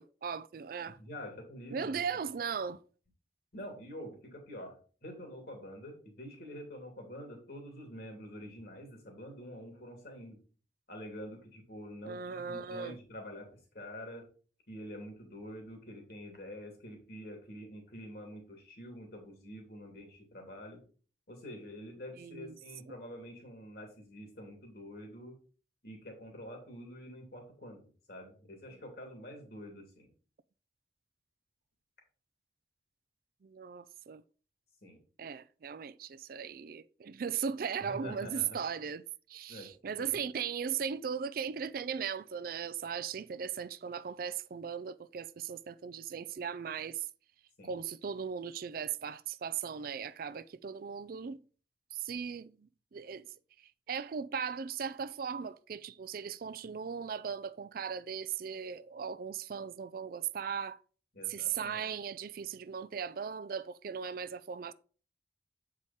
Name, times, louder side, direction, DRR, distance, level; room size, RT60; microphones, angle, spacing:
voice 1, 0.0-1.0 1.7-2.8 12.0-12.9 22.2-22.5 33.4-34.2 35.2-39.0 39.3-47.1 47.6-51.4 51.9-53.2 53.9-60.8 61.3-64.7, right 7 dB, 55° right, 0.4 m, -38 dB
voice 2, 1.0-2.2 3.5-10.4 10.9-14.3 14.7-20.8 21.3-25.4 25.8-27.8 28.1-30.1 34.8-35.0 37.8-38.6 39.5-40.2 47.6-47.7 61.1-61.9, equal, 60° left, 2.7 m, -47 dB
8.1 x 4.8 x 4.1 m
head